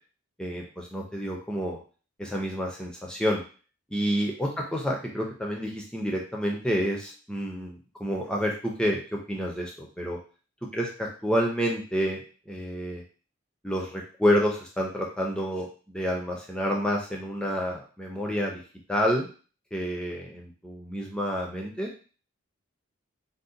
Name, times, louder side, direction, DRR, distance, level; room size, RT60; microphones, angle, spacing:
voice 1, 0.4-1.8 2.2-3.4 3.9-10.2 10.7-13.0 13.6-18.6 18.9-19.3 19.7-21.9, equal, 5° left, -1 dB, 0.4 m, -29 dB
2.6 x 2.0 x 3.7 m, 0.38 s
head